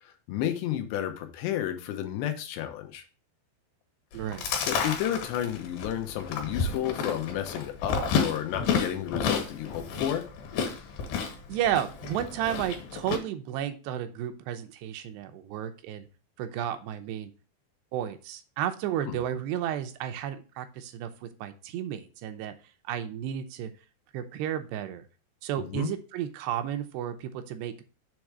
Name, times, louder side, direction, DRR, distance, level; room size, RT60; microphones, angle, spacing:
voice 1, 0.3-3.0 4.6-10.2 19.1-19.2 25.6-25.9, left 11 dB, 90° left, 6 dB, 3.2 m, -32 dB
Chewing mastication, 4.1-13.2, left 6 dB, 75° left, 3.6 m, -31 dB
voice 2, 4.1-4.5 11.5-16.0 16.4-17.3 17.9-22.5 22.9-23.7 24.1-25.0 25.4-27.8, right 11 dB, 80° right, 8 dB, 2.8 m, -32 dB
7.6 x 3.5 x 6.0 m, 0.34 s
omnidirectional pair, 4.8 m